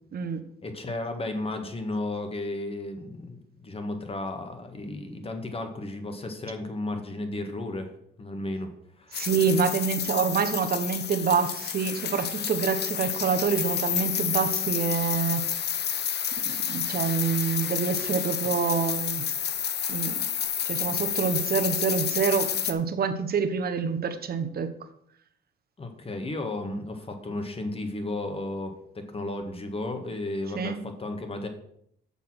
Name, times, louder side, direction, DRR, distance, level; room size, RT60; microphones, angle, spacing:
voice 1, 0.6-7.9 8.2-9.3 25.8-31.5, left 2 dB, 30° left, 6 dB, 1.7 m, -34 dB
sound 1, 9.1-22.7, left 9 dB, 55° left, 0.8 m, -30 dB
voice 2, 9.1-15.5 16.4-19.3 19.9-20.1 20.6-24.7 30.6-30.8, right 6 dB, 50° right, 8 dB, 1.1 m, -27 dB
7.0 x 6.8 x 6.2 m, 0.70 s
cardioid pair, 90°, 20 cm